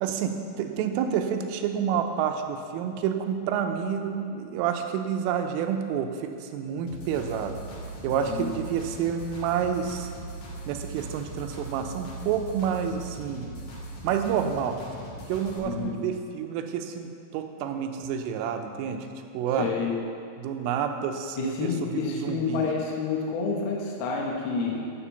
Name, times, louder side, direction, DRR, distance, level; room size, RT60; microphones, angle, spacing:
voice 1, 0.0-7.6 8.0-10.1 10.7-13.5 14.0-14.8 15.3-19.1 19.3-19.7 20.4-22.7, right 8 dB, 90° right, 6 dB, 3.4 m, -29 dB
sound 1, 6.9-15.6, right 2 dB, 55° left, 2.3 m, -40 dB
voice 2, 15.7-16.0 19.6-19.9 21.4-24.8, left 5 dB, 75° left, -1 dB, 2.4 m, -29 dB
10.0 x 7.4 x 7.0 m, 2.4 s
omnidirectional pair, 5.7 m